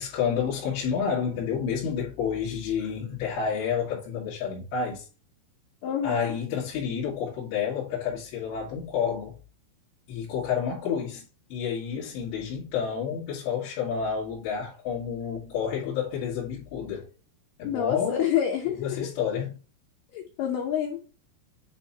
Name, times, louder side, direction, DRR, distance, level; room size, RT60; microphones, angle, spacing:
voice 1, 0.0-5.1 6.0-9.4 10.1-11.2 11.5-17.1 17.6-18.2 18.7-19.6, left 7 dB, 70° left, 3.6 m, -29 dB
voice 2, 5.8-6.4 17.6-19.1 20.1-21.0, left 9 dB, 85° left, 2.2 m, -28 dB
8.3 x 3.0 x 4.0 m
omnidirectional pair, 5.7 m